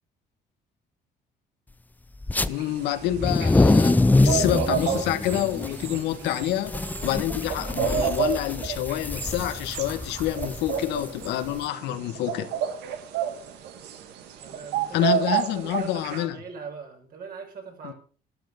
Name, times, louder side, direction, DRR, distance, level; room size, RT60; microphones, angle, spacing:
sound 1, 2.2-2.5 3.1-11.6, left 2 dB, 10° left, 0.5 m, -25 dB
sound 2, 2.4-16.2, right 9 dB, 80° right, 1.9 m, -31 dB
voice 1, 2.5-12.5 14.9-16.3 17.8-17.9, left 13 dB, 85° left, 1.5 m, -27 dB
voice 2, 14.4-17.9, right 5 dB, 60° right, 6.0 m, -41 dB
12.5 x 11.5 x 5.2 m
cardioid pair, 110°, 17 cm